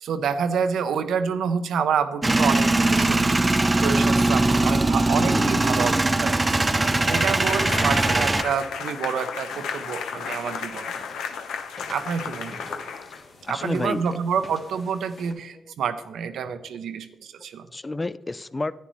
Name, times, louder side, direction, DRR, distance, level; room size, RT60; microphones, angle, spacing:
voice 1, 0.0-5.9 6.2-6.4 6.8-10.9 11.9-12.6 13.5-17.7, right 6 dB, 80° right, 10 dB, 0.6 m, -28 dB
Male speech man speaking / Vehicle / Engine starting, 2.2-8.4, right 2 dB, 25° right, 0.6 m, -21 dB
voice 2, 5.2-5.9 13.1-14.0 15.6-15.7 17.7-18.7, left 2 dB, 25° left, 16 dB, 0.4 m, -31 dB
sound 1, 6.7-13.5, left 6 dB, 85° left, 0.7 m, -34 dB
sound 2, 9.5-15.3, left 2 dB, 60° left, 1.8 m, -46 dB
10.0 x 9.5 x 3.1 m, 0.96 s
supercardioid pair, 60°, 0 cm